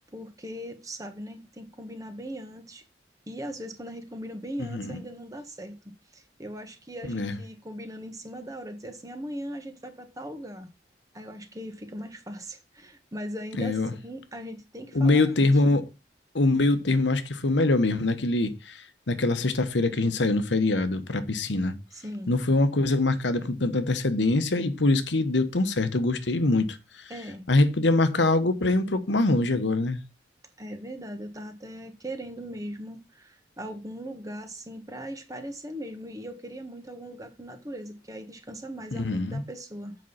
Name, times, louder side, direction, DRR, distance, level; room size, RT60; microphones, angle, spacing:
voice 1, 0.1-2.8 3.3-5.8 6.1-10.7 11.1-15.8 21.9-22.3 27.1-27.4 30.6-40.0, equal, 20° right, 1.3 m, -39 dB
voice 2, 4.6-5.0 7.1-7.3 13.6-13.9 14.9-15.8 16.3-21.7 22.3-27.1 27.5-30.0 38.9-39.4, left 2 dB, 90° left, 1.0 m, -24 dB
7.8 x 5.4 x 5.6 m
head